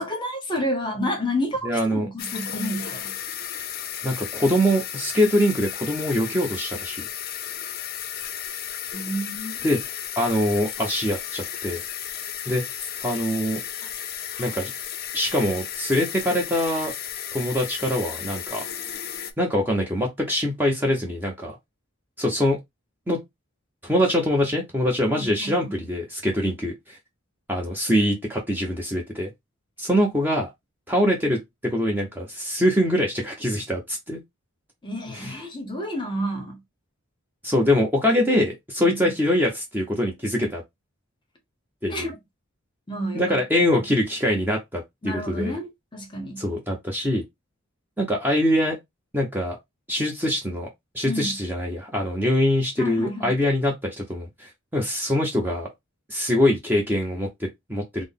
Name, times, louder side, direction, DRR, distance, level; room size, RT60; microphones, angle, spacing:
voice 1, 0.0-3.1 8.9-9.5 14.3-14.4 25.1-25.8 34.8-36.6 38.8-39.1 41.9-42.2 42.9-43.4 45.0-46.4 51.0-51.4 52.8-53.4, equal, 20° left, 0.8 m, -30 dB
voice 2, 1.6-2.1 4.0-7.0 9.6-9.8 10.2-11.8 12.5-12.6 13.0-13.6 14.4-14.7 15.1-16.9 17.3-18.6 19.4-21.6 22.2-22.6 23.1-23.2 23.8-27.0 27.5-29.3 29.8-30.5 30.9-34.2 35.1-35.4 37.4-40.6 41.8-42.1 43.1-45.5 46.4-47.2 48.0-48.8 49.1-49.6 49.9-50.7 50.9-55.7 56.1-58.0, left 1 dB, 10° right, 0.6 m, -23 dB
sound 1, 2.2-19.3, left 9 dB, 45° left, 0.5 m, -34 dB
3.7 x 2.0 x 3.5 m
head